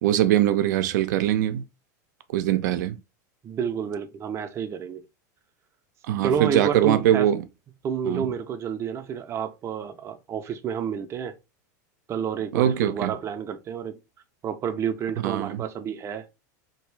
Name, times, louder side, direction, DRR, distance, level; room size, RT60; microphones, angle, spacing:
voice 1, 0.0-1.6 2.3-3.0 6.1-7.4 8.0-8.3 12.5-13.1 15.2-15.6, right 11 dB, 80° right, 0.5 m, -22 dB
voice 2, 3.4-5.0 6.2-7.3 7.8-11.4 12.1-14.0 14.4-16.3, right 7 dB, 30° right, 0.5 m, -30 dB
2.9 x 2.6 x 3.2 m
supercardioid pair, 130°, 10 cm